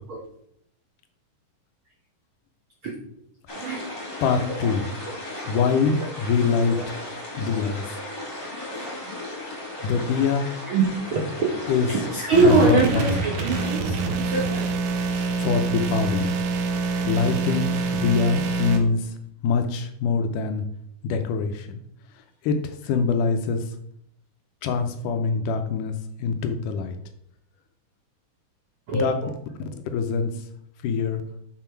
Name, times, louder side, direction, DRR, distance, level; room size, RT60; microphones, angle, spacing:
sound 1, 3.5-13.7, left 1 dB, 25° left, 2.5 m, -35 dB
voice 1, 4.2-4.8 5.5-6.9 7.4-7.8 9.8-10.5 11.7-11.9 12.4-13.0 15.4-16.3 17.0-19.1 19.4-20.6 21.0-21.8 22.4-23.6 24.6-25.9 26.2-27.0 28.9-29.1 29.9-30.3 30.8-31.2, left 5 dB, 75° left, 7 dB, 2.1 m, -24 dB
voice 2, 10.6-11.5 11.9-14.7 28.9-29.3, right 3 dB, 65° right, -2 dB, 1.3 m, -23 dB
sound 2, 12.3-18.8, right 3 dB, 80° right, 2.6 m, -26 dB
6.9 x 5.9 x 4.4 m, 0.69 s
omnidirectional pair, 4.0 m